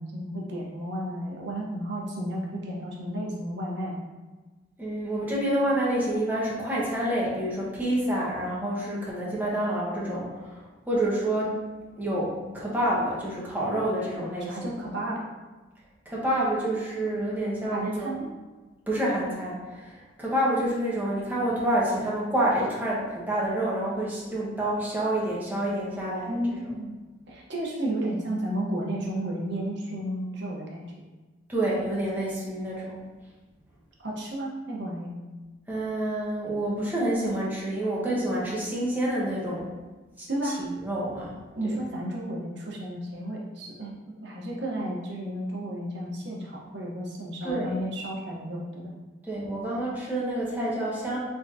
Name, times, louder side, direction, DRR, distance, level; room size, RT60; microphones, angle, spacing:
voice 1, 0.0-4.0 14.5-15.2 17.7-18.3 26.2-27.0 27.3-30.9 34.0-35.2 40.3-40.6 41.5-43.9 44.2-48.9, right 1 dB, 65° right, -3 dB, 0.9 m, -32 dB
voice 2, 4.8-11.6 12.0-14.7 16.1-18.1 18.9-26.7 31.5-33.0 35.7-39.7 40.2-41.3 41.6-41.7 47.4-47.8 49.3-51.2, right 1 dB, 10° right, -7 dB, 1.0 m, -28 dB
3.7 x 3.4 x 2.7 m, 1.2 s
head